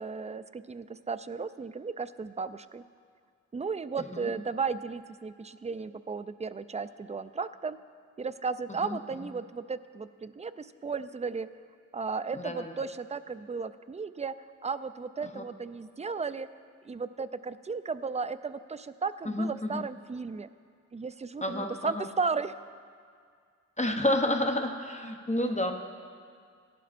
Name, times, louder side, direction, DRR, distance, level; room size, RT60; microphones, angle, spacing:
voice 1, 0.0-2.8 3.5-7.8 8.2-11.5 11.9-14.3 14.6-16.5 16.8-20.5 20.9-22.5, right 5 dB, 25° right, 13 dB, 0.4 m, -35 dB
voice 2, 4.0-4.3 8.8-9.0 12.3-12.7 15.2-15.4 19.2-19.8 21.4-22.1 23.8-25.7, left 1 dB, 25° left, 4 dB, 0.8 m, -30 dB
17.0 x 11.5 x 2.5 m, 2.1 s
cardioid pair, 60°, 30 cm